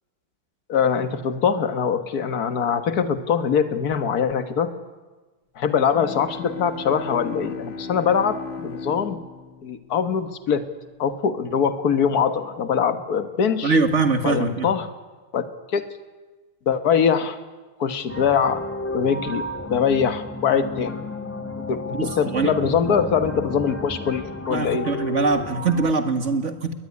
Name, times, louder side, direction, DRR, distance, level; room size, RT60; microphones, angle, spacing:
voice 1, 0.7-4.7 5.6-9.2 9.6-10.7 11.0-13.8 14.2-14.9 15.3-15.4 15.7-15.8 16.7-17.4 17.8-18.6 18.9-21.0 21.6-24.9, left 7 dB, 50° left, 9 dB, 1.8 m, -23 dB
Bowed string instrument, 5.7-11.1, left 4 dB, 35° left, 1.6 m, -37 dB
voice 2, 13.6-14.7 21.9-22.5 24.5-26.7, right 4 dB, 40° right, 8 dB, 1.7 m, -22 dB
sound 1, 18.1-25.9, left 2 dB, 5° left, 1.5 m, -33 dB
21.0 x 21.0 x 9.8 m, 1.3 s
omnidirectional pair, 2.3 m